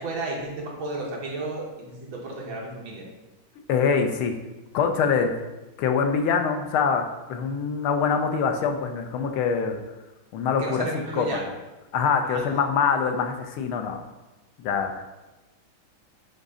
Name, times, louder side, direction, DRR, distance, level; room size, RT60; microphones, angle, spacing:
voice 1, 0.0-3.1 10.6-11.4 12.2-12.6, right 2 dB, 70° right, -2 dB, 2.0 m, -33 dB
voice 2, 3.7-4.3 4.7-5.4 5.8-9.8 10.3-10.9 11.1-11.3 11.9-14.0 14.6-15.0, left 6 dB, 80° left, 5 dB, 1.6 m, -24 dB
9.4 x 3.9 x 3.7 m, 1.1 s
omnidirectional pair, 2.3 m